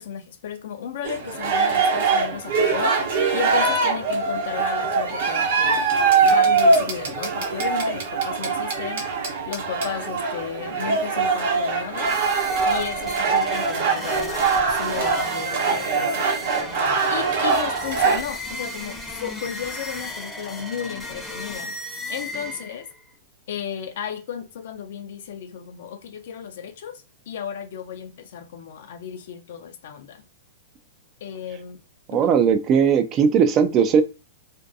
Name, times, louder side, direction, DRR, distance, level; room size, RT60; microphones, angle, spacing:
voice 1, 0.0-2.9 3.3-5.8 6.2-9.0 9.5-12.1 12.7-16.3 17.1-21.7 22.1-22.9 23.5-30.2 31.2-31.8 32.1-32.3, left 8 dB, 65° left, 0.6 m, -34 dB
sound 1, 1.0-18.2, right 4 dB, 65° right, 0.9 m, -22 dB
sound 2, 11.9-23.0, equal, 5° left, 0.6 m, -35 dB
voice 2, 32.1-34.0, right 7 dB, 30° right, 0.3 m, -18 dB
2.6 x 2.2 x 2.5 m
hypercardioid pair, 140°, 0 cm